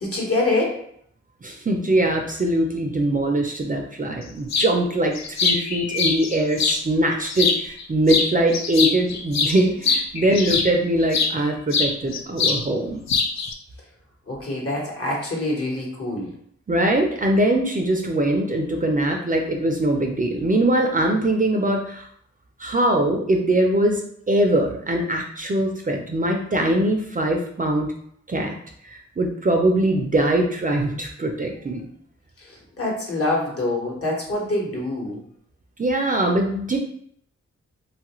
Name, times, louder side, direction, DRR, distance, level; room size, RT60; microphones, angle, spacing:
voice 1, 0.0-0.8 14.3-16.3 32.4-35.2, left 2 dB, 50° left, -3 dB, 1.2 m, -25 dB
voice 2, 1.4-13.0 16.7-22.1 22.6-27.9 28.3-28.5 28.8-31.9 35.8-36.8, right 1 dB, 30° right, 2 dB, 0.4 m, -22 dB
sound 1, 4.5-4.7 5.1-6.8 7.3-7.8 8.1-11.3 11.7-12.6 12.9-13.5, left 5 dB, 65° left, 0.4 m, -23 dB
3.0 x 2.4 x 2.9 m, 0.66 s
cardioid pair, 70°, 29 cm